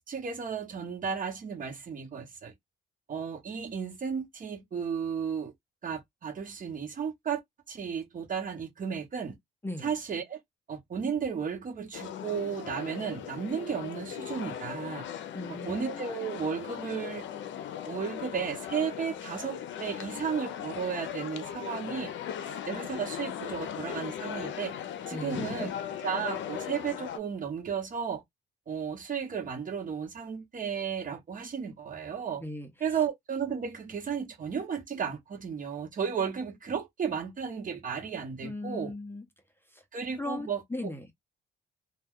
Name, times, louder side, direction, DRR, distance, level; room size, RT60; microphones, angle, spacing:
voice 1, 0.1-2.5 3.1-5.5 5.8-7.4 7.7-9.4 9.8-10.4 10.7-15.0 15.6-17.3 17.9-22.1 22.7-24.7 25.1-25.7 26.0-28.2 28.7-32.4 32.8-38.9 39.9-40.9, right 7 dB, 45° right, 0.9 m, -34 dB
sound 1, 11.9-27.2, left 9 dB, 70° left, 0.5 m, -38 dB
voice 2, 15.3-16.0 25.1-25.7 32.4-32.7 38.4-39.3 39.7-39.8 40.2-41.1, left 1 dB, 10° left, 0.6 m, -38 dB
2.2 x 2.2 x 3.5 m
cardioid pair, 95°, 20 cm